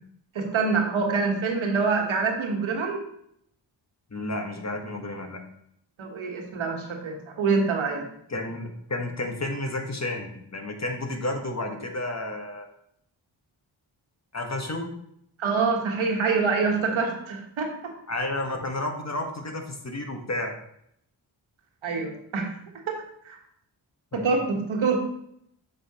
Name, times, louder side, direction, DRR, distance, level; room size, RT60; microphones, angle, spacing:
voice 1, 0.3-3.0 6.0-8.0 15.4-17.7 21.8-22.5 22.9-23.0 23.2-23.4 24.1-25.0, right 4 dB, 85° right, 2 dB, 1.3 m, -25 dB
voice 2, 4.1-5.4 8.3-12.7 14.3-14.9 18.1-20.5 24.1-24.2, left 2 dB, 35° left, 3 dB, 1.2 m, -31 dB
7.3 x 5.6 x 2.9 m, 0.72 s
cardioid pair, 60°, 47 cm